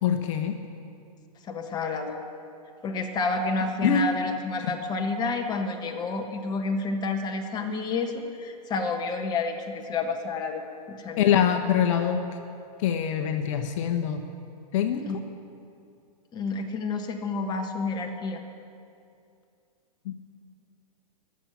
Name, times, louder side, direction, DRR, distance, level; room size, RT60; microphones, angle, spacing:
voice 1, 0.0-0.6 3.8-4.0 11.2-12.2 12.8-14.2 14.7-15.1 20.0-20.1, left 9 dB, 50° left, 6 dB, 1.0 m, -24 dB
voice 2, 1.4-2.2 2.8-11.4 15.0-15.2 16.3-18.4, left 3 dB, 20° left, 3 dB, 1.4 m, -30 dB
22.0 x 7.4 x 7.2 m, 2.5 s
hypercardioid pair, 130°, 21 cm